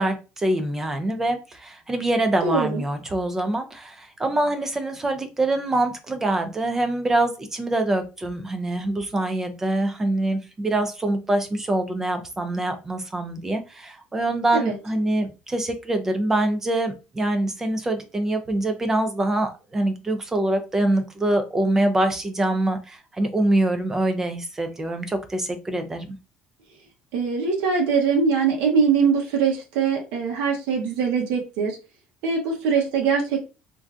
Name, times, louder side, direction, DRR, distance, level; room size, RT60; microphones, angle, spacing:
voice 1, 0.0-26.1, right 1 dB, 15° right, 7 dB, 0.3 m, -24 dB
voice 2, 2.4-2.8 14.5-14.7 27.1-31.8 32.2-33.5, right 5 dB, 90° right, 0 dB, 0.8 m, -22 dB
3.3 x 2.5 x 2.3 m, 0.30 s
cardioid pair, 165°, 3 cm